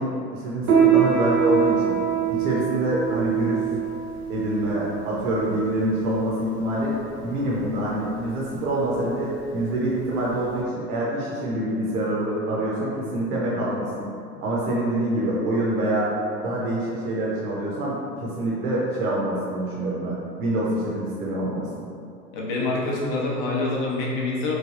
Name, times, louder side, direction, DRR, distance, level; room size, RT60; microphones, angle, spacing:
voice 1, 0.0-2.0 2.3-3.6 4.3-6.9 7.2-14.1 14.4-16.1 16.4-21.9, right 1 dB, 65° right, -5 dB, 0.7 m, -26 dB
Piano, 0.6-10.6, right 8 dB, 25° right, 0.5 m, -25 dB
voice 2, 22.3-24.6, left 2 dB, 30° left, -3 dB, 0.5 m, -26 dB
3.2 x 2.3 x 2.4 m, 2.4 s
hypercardioid pair, 105°, 50 cm